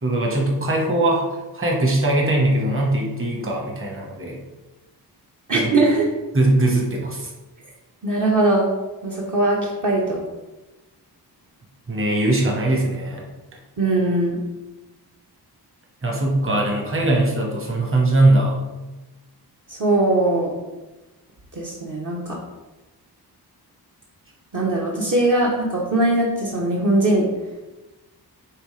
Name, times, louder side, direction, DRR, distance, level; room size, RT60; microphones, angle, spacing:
voice 1, 0.0-4.4 5.5-5.7 6.3-7.3 11.9-13.3 16.0-18.6, right 2 dB, 30° right, -1 dB, 1.3 m, -21 dB
voice 2, 5.5-6.0 8.0-8.7 9.0-10.2 13.8-14.4 19.7-20.5 21.6-22.4 24.5-27.2, right 2 dB, 50° right, -4 dB, 1.1 m, -20 dB
9.5 x 3.7 x 3.3 m, 1.1 s
wide cardioid pair, 145°, 40 cm